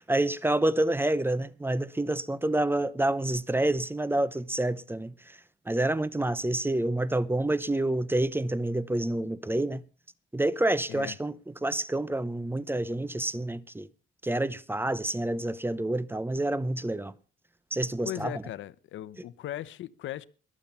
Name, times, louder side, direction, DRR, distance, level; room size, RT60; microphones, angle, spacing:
voice 1, 0.0-5.4 5.7-9.8 10.3-11.3 11.6-13.9 14.2-17.1 17.7-18.3, right 1 dB, 10° right, 0.7 m, -28 dB
voice 2, 18.0-20.3, left 12 dB, 75° left, 0.8 m, -38 dB
21.0 x 7.4 x 5.6 m
cardioid pair, 90°, 20 cm